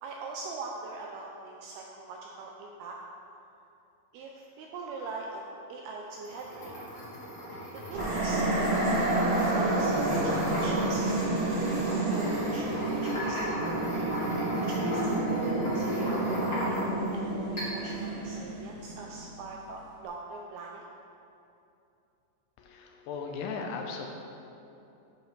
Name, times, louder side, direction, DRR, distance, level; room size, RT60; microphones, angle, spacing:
voice 1, 0.0-3.0 4.1-6.7 7.7-11.1 12.1-13.6 14.2-16.8 17.1-20.8, right 3 dB, 85° right, 0 dB, 2.2 m, -42 dB
sound 1, 6.1-17.1 17.6-18.0, equal, 50° left, 0.9 m, -37 dB
sound 2, 7.9-19.3, right 2 dB, 50° right, 2.0 m, -29 dB
voice 2, 22.6-24.1, left 5 dB, 80° left, 2 dB, 2.6 m, -37 dB
10.5 x 6.4 x 3.2 m, 2.8 s
omnidirectional pair, 4.9 m